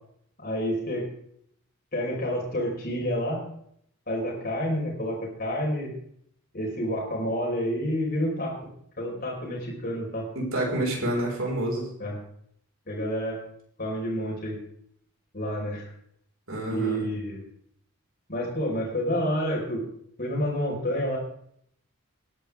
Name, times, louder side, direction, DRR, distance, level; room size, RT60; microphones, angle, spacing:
voice 1, 0.4-1.0 1.9-3.4 4.1-5.9 6.5-8.5 9.0-10.3 12.0-12.2 12.9-13.4 13.8-14.6 15.3-15.9 16.7-17.4 18.3-19.8 20.2-21.2, equal, 40° left, -3 dB, 4.8 m, -29 dB
voice 2, 10.3-11.9 16.5-17.0, right 1 dB, 65° right, -1 dB, 4.9 m, -28 dB
19.5 x 11.0 x 3.6 m, 0.69 s
head